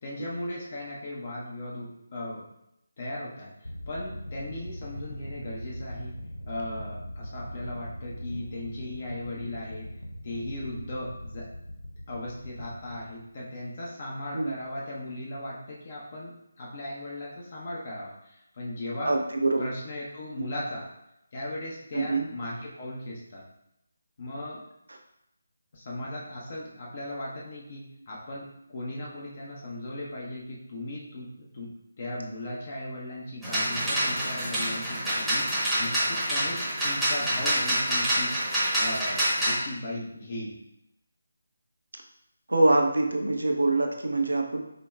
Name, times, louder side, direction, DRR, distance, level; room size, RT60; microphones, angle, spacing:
voice 1, 0.0-2.5 3.0-3.5 3.9-6.2 6.5-9.9 10.2-11.5 12.1-19.2 19.6-20.9 21.3-23.4 24.2-24.6 25.7-31.7 32.0-40.6, left 1 dB, 40° left, -4 dB, 0.9 m, -37 dB
sound 1, 3.6-13.7, equal, 80° left, 0.5 m, -41 dB
voice 2, 19.0-19.7 20.4-20.5 21.9-22.3 42.5-44.6, right 2 dB, 75° right, 2 dB, 0.7 m, -24 dB
sound 2, 33.4-39.6, right 1 dB, ahead, 1.0 m, -27 dB
4.9 x 3.0 x 2.3 m, 0.82 s
figure-of-eight pair, 155°, 0 cm